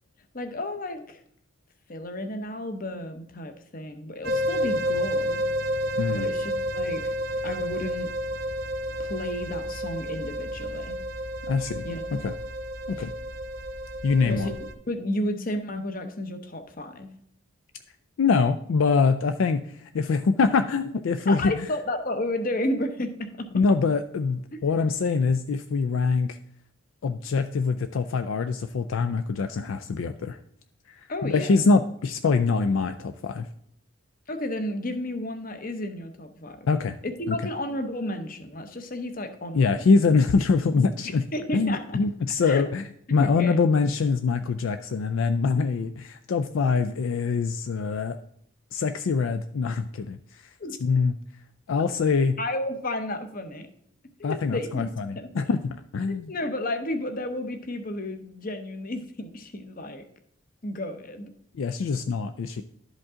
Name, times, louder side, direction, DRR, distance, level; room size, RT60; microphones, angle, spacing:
voice 1, 0.3-1.2 1.9-5.4 6.1-7.1 7.4-8.1 9.0-11.0 11.8-12.0 13.0-13.1 14.2-14.6 14.9-17.1 21.3-23.5 24.5-24.6 31.1-31.6 34.3-36.7 37.0-39.9 41.0-42.0 42.4-42.6 43.2-43.6 50.6-50.8 52.4-53.7 54.2-54.9 55.2-55.5 56.1-60.1 60.6-61.3, left 1 dB, 40° left, 8 dB, 0.8 m, -32 dB
sound 1, 4.2-14.7, equal, 45° right, 0.7 m, -30 dB
voice 2, 11.5-11.8 12.1-12.3 12.9-13.1 14.0-14.5 18.2-21.7 23.5-26.4 27.0-30.4 30.9-33.5 36.7-37.0 37.3-37.4 39.5-41.2 41.5-42.8 43.1-48.2 48.7-50.5 50.8-51.1 51.7-52.4 54.2-56.3 61.5-62.6, left 4 dB, 65° left, 9 dB, 0.4 m, -24 dB
11.5 x 5.3 x 3.6 m, 0.69 s
head